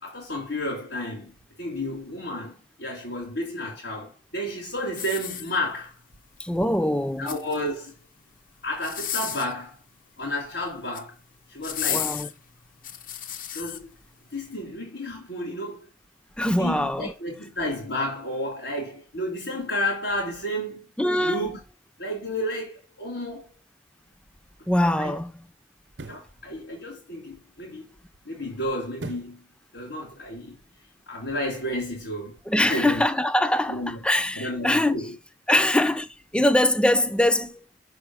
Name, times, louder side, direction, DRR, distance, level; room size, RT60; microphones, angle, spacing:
voice 1, 0.0-5.9 7.2-7.9 8.6-9.8 10.2-11.1 11.5-12.2 13.5-13.9 14.3-15.8 16.6-20.9 21.2-21.6 22.0-23.5 25.0-25.1 26.0-27.9 28.2-29.4 29.7-30.6 31.1-32.4 32.7-33.0 33.7-35.1 35.5-35.7, left 1 dB, 75° left, 3.3 m, -31 dB
sound 1, 4.9-5.9 7.0-7.8 8.7-9.6 10.7-11.1 11.6-13.8 14.4-14.5, left 10 dB, 50° left, 0.6 m, -33 dB
voice 2, 6.4-7.4 11.9-12.3 16.4-17.1 21.0-21.5 24.7-25.5 32.5-35.0 35.5-37.6, left 1 dB, 5° left, 0.4 m, -23 dB
sound 2, 24.0-24.2 25.9-26.3 29.0-29.4 29.9-30.0, right 2 dB, 75° right, 0.8 m, -38 dB
6.2 x 4.9 x 4.9 m
head